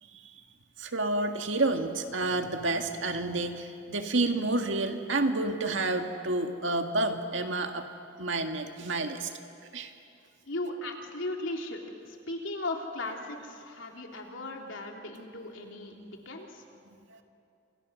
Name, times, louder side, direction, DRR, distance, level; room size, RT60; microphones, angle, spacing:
voice 1, 0.0-0.4 0.8-7.9 8.2-9.3 9.7-9.9 17.1-17.2, right 2 dB, 75° right, 5 dB, 2.0 m, -29 dB
voice 2, 10.5-11.8 12.1-16.6, left 2 dB, 80° left, 1 dB, 3.3 m, -37 dB
29.0 x 27.5 x 6.4 m, 2.5 s
head